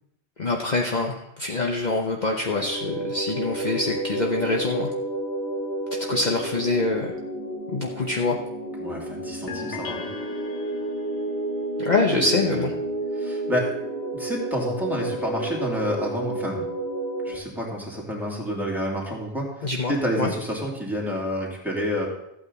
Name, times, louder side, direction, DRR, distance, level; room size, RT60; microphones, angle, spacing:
voice 1, 0.4-4.9 5.9-7.1 7.7-8.4 11.8-12.7 19.6-20.3, left 3 dB, 40° left, 1 dB, 1.0 m, -25 dB
sound 1, 2.4-17.4, right 1 dB, 70° left, 2.6 m, -31 dB
voice 2, 8.8-10.0 12.1-12.7 13.2-13.7 14.1-16.6 17.2-19.5 19.9-22.1, equal, ahead, -4 dB, 2.9 m, -29 dB
sound 2, 9.5-11.2, left 5 dB, 85° left, 1.3 m, -37 dB
14.5 x 8.8 x 4.1 m, 0.81 s
omnidirectional pair, 1.2 m